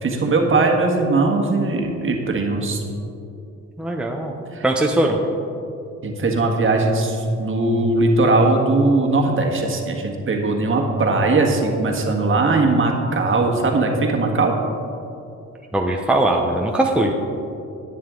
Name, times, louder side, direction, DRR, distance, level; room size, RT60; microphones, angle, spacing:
voice 1, 0.0-2.8 4.5-4.6 6.0-14.5, right 3 dB, 40° right, 1 dB, 1.6 m, -19 dB
voice 2, 3.8-4.3 4.6-5.2 15.7-17.1, right 1 dB, 5° right, 1 dB, 0.8 m, -20 dB
11.0 x 9.4 x 3.8 m, 2.7 s
cardioid pair, 90°, 30 cm